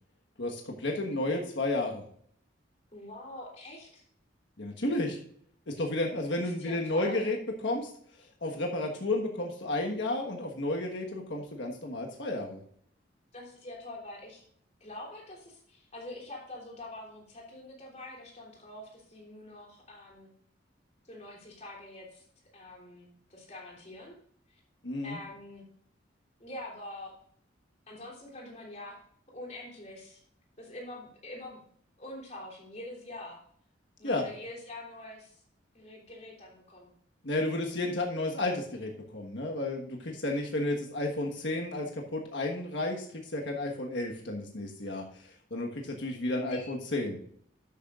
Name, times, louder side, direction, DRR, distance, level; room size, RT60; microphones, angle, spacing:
voice 1, 0.4-2.0 4.6-5.2 5.7-7.4 7.6-7.9 8.4-12.6 24.8-25.2 34.0-34.3 37.2-47.2, left 2 dB, 65° left, 1 dB, 1.4 m, -32 dB
voice 2, 2.9-4.0 6.4-7.3 13.3-14.4 14.8-20.3 21.0-22.2 22.5-24.2 24.5-24.6 25.0-25.6 26.4-27.1 27.9-29.0 29.3-30.2 30.6-31.6 32.0-33.4 34.0-35.4 35.7-36.9 46.3-46.8, left 1 dB, 35° left, -2 dB, 3.3 m, -45 dB
12.0 x 8.8 x 2.5 m, 0.63 s
head